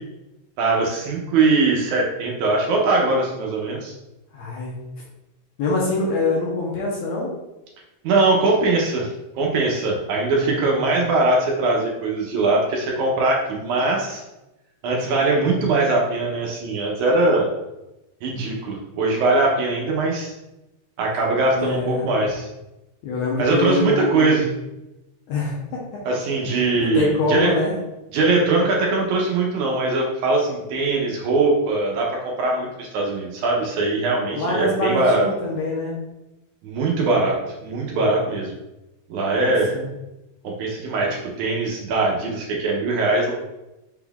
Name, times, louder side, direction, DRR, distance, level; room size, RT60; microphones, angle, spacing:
voice 1, 0.6-3.9 8.0-9.1 9.4-14.2 14.8-17.5 18.2-20.3 21.0-22.5 23.4-24.4 26.1-27.5 28.1-35.2 36.6-38.5 39.1-39.7 40.4-43.3, right 3 dB, 75° right, -1 dB, 1.8 m, -21 dB
voice 2, 4.3-4.8 5.6-7.3 10.3-10.8 21.5-22.1 23.0-24.5 25.3-25.8 26.8-27.7 34.3-36.0 39.3-39.9, left 2 dB, 75° left, -4 dB, 1.7 m, -25 dB
5.9 x 3.7 x 2.3 m, 0.97 s
omnidirectional pair, 3.9 m